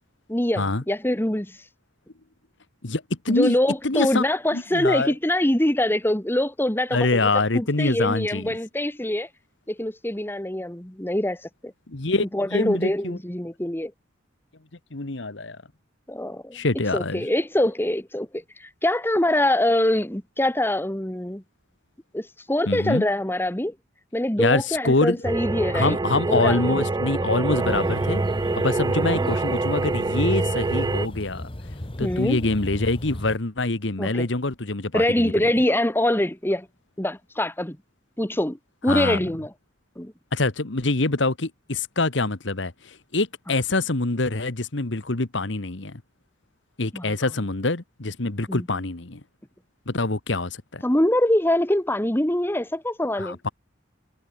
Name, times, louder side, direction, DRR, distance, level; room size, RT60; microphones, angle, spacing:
voice 1, 0.3-1.6 3.3-9.3 9.7-11.7 12.2-13.9 16.1-16.6 16.9-21.4 22.1-23.7 24.1-25.9 26.3-26.8 29.0-29.3 32.0-32.4 34.0-34.3 34.9-36.7 37.0-37.8 38.2-38.6 38.8-39.5 40.0-40.1 46.9-47.2 48.5-48.7 50.8-53.4, left 1 dB, 10° left, 1.5 m, -24 dB
voice 2, 2.8-3.6 3.8-4.3 4.5-5.1 6.9-8.4 11.9-12.2 12.5-13.2 14.9-15.6 16.5-17.2 22.7-23.0 24.4-25.2 25.7-28.2 28.5-31.4 32.0-35.5 38.9-39.2 40.3-46.0 46.8-49.2 49.9-50.8 53.2-53.5, left 2 dB, 65° left, 1.6 m, -25 dB
sound 1, 25.2-31.1, right 2 dB, 20° right, 0.4 m, -25 dB
sound 2, 27.5-33.4, left 1 dB, 30° left, 1.4 m, -37 dB
head